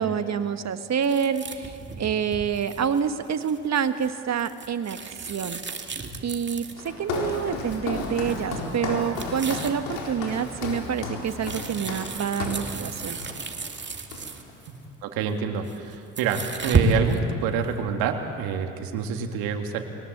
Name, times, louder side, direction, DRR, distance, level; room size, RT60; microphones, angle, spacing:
voice 1, 0.0-5.6 6.2-13.2, right 7 dB, 45° right, 10 dB, 1.5 m, -27 dB
sound 1, 1.0-7.1 7.7-7.9 8.3-8.4 8.7-9.8 10.3-14.7 15.5-17.2, right 3 dB, 30° right, 2.3 m, -32 dB
Walk footsteps, 6.7-12.7 13.2-13.5 13.7-14.5, left 3 dB, 80° left, 4.2 m, -33 dB
voice 2, 14.7-19.8, right 6 dB, 75° right, 5 dB, 2.0 m, -27 dB
22.0 x 19.0 x 8.0 m, 2.4 s
hypercardioid pair, 60°, 36 cm